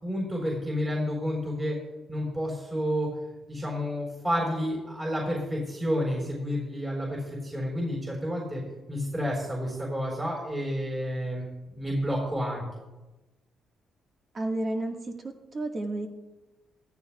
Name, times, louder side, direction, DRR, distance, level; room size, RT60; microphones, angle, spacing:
voice 1, 0.0-1.8 2.1-3.1 3.5-8.6 8.9-11.4 11.7-12.6, equal, 20° right, -2 dB, 4.0 m, -30 dB
voice 2, 14.3-15.1 15.5-16.1, right 2 dB, 40° right, 2 dB, 1.6 m, -31 dB
15.0 x 12.5 x 2.3 m, 1.1 s
cardioid pair, 90°, 0 cm